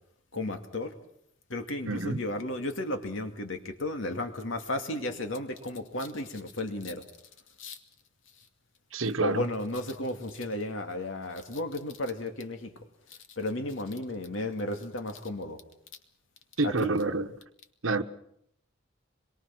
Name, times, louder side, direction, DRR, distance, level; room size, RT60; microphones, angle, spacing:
voice 1, 0.3-0.9 1.5-7.0 7.6-7.8 9.2-15.6 16.6-16.9, left 1 dB, 75° left, 2.5 m, -34 dB
voice 2, 1.9-2.2 8.9-9.4 16.6-17.3 17.8-18.0, right 3 dB, 90° right, 1.3 m, -28 dB
25.5 x 22.5 x 6.1 m
head